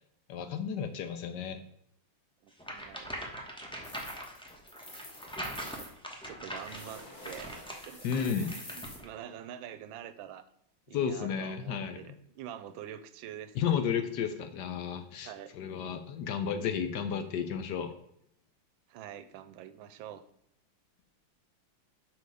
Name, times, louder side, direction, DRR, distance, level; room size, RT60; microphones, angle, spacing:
voice 1, 0.3-1.6 8.0-8.5 10.9-12.0 13.5-17.9, left 7 dB, 70° left, 9 dB, 1.2 m, -32 dB
voice 2, 2.4-3.3 4.9-5.0 5.6-5.9 6.2-7.5 7.8-10.5 10.9-13.7 15.2-15.5 18.9-20.3, right 10 dB, 90° right, 13 dB, 1.4 m, -46 dB
sound 1, 2.6-9.1, equal, 5° left, 0.6 m, -42 dB
sound 2, 3.8-5.9 6.6-9.0, left 2 dB, 50° left, 2.3 m, -48 dB
6.1 x 5.5 x 4.8 m, 0.74 s
omnidirectional pair, 2.1 m